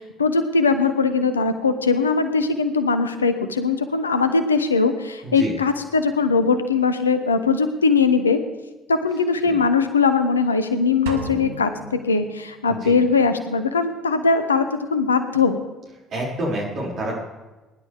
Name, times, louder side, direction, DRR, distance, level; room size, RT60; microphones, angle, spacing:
voice 1, 0.0-8.4 8.9-15.6, left 4 dB, 80° left, 10 dB, 0.8 m, -20 dB
sound 1, 11.1-12.9, right 3 dB, 70° right, 1.3 m, -34 dB
voice 2, 16.1-17.1, right 1 dB, 50° right, -3 dB, 5.7 m, -28 dB
21.5 x 11.0 x 3.5 m, 1.1 s
figure-of-eight pair, 50°, 0 cm